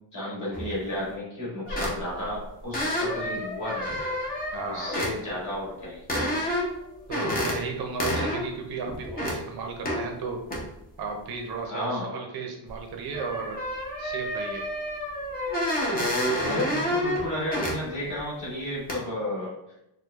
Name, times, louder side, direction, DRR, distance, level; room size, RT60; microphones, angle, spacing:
voice 1, 0.1-4.0 4.6-6.0 11.7-12.1 16.4-19.5, left 1 dB, 35° left, -6 dB, 1.2 m, -32 dB
sound 1, 0.5-0.7 1.7-2.2 2.7-5.1 6.1-6.8 7.1-7.6 8.0-8.5 8.9-9.4 9.9-10.1 10.5-10.6 12.7-12.8 13.1-17.8 18.2-18.3 18.9-19.0, equal, 20° left, 0.6 m, -29 dB
voice 2, 4.5-5.0 7.1-10.4 11.0-13.6 14.0-14.6, right 4 dB, 50° right, 2 dB, 0.7 m, -34 dB
4.5 x 2.2 x 2.3 m, 0.86 s
cardioid pair, 175°, 47 cm